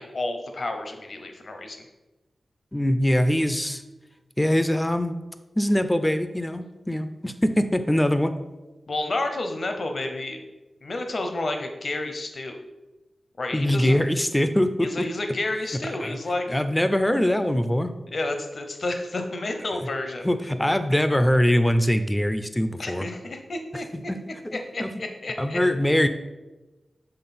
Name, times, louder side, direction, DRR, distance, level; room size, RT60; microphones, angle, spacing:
voice 1, 0.0-1.8 8.9-10.4 10.8-12.6 13.4-14.0 14.8-16.6 18.1-20.3 22.8-24.1 24.5-25.6, left 2 dB, 50° left, 5 dB, 0.7 m, -30 dB
voice 2, 2.7-3.8 4.4-5.2 5.6-8.3 13.5-15.1 16.0-16.2 16.5-17.9 19.8-19.9 20.2-23.1 23.9-24.2 24.4-24.9 25.4-26.1, left 1 dB, 10° left, 10 dB, 0.3 m, -23 dB
7.7 x 3.6 x 4.2 m, 1.1 s
wide cardioid pair, 145°, 0 cm